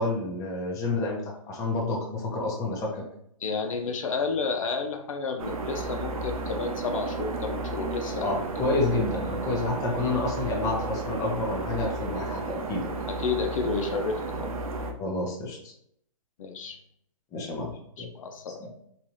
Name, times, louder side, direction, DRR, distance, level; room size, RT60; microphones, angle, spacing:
voice 1, 0.0-3.0 8.2-12.9 15.0-15.7 17.3-18.1 18.6-18.7, left 2 dB, 20° left, -1 dB, 0.6 m, -29 dB
voice 2, 3.4-8.7 13.1-14.5 16.4-16.8 18.0-18.6, left 4 dB, 70° left, 5 dB, 0.5 m, -31 dB
sound 1, 5.4-14.9, right 3 dB, 85° right, 0.6 m, -33 dB
2.8 x 2.3 x 3.0 m, 0.72 s
hypercardioid pair, 145°, 18 cm